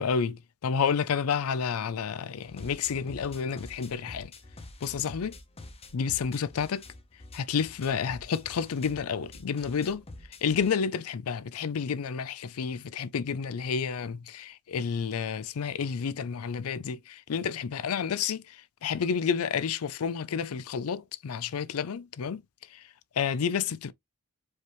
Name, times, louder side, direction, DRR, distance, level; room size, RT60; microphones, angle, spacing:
voice 1, 0.0-4.3 4.8-5.4 5.9-6.8 7.3-10.0 10.4-18.4 18.8-22.4 23.2-23.9, left 6 dB, 80° left, 0.4 m, -30 dB
sound 1, 2.4-10.8, left 2 dB, 30° left, 0.7 m, -47 dB
4.7 x 3.0 x 3.2 m
head